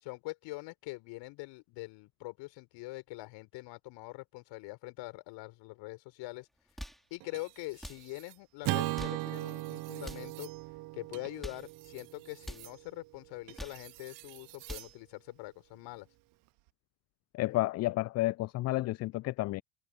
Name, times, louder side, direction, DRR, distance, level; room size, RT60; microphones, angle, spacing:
voice 1, 0.0-6.5 7.1-10.5 10.9-16.1, left 22 dB, 60° left, 5.0 m, -44 dB
sound 1, 6.6-7.1 7.7-8.1 8.8-9.3 10.0-10.4 11.2-11.7 12.4-12.7 13.4-13.9 14.4-15.0, equal, ahead, 4.9 m, -45 dB
sound 2, 7.2-8.4 9.1-15.0 16.4-16.7, right 25 dB, 65° right, 3.9 m, -55 dB
Acoustic guitar / Strum, 8.6-13.1, right 21 dB, 45° right, 0.5 m, -37 dB
voice 2, 17.3-19.6, left 17 dB, 35° left, 0.4 m, -31 dB
hypercardioid pair, 70°, 47 cm